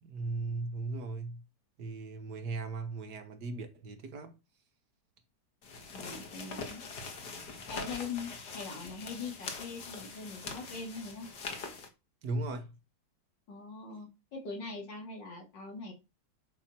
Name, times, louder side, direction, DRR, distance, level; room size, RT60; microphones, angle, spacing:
voice 1, 0.0-1.4 1.8-4.3 12.2-12.7, right 3 dB, 70° right, 2.0 m, -37 dB
sound 1, 5.6-11.9, left 4 dB, 65° left, 2.2 m, -43 dB
voice 2, 5.9-6.8 7.7-11.3 13.5-15.9, left 4 dB, 85° left, 3.5 m, -42 dB
10.5 x 6.1 x 4.5 m
omnidirectional pair, 1.9 m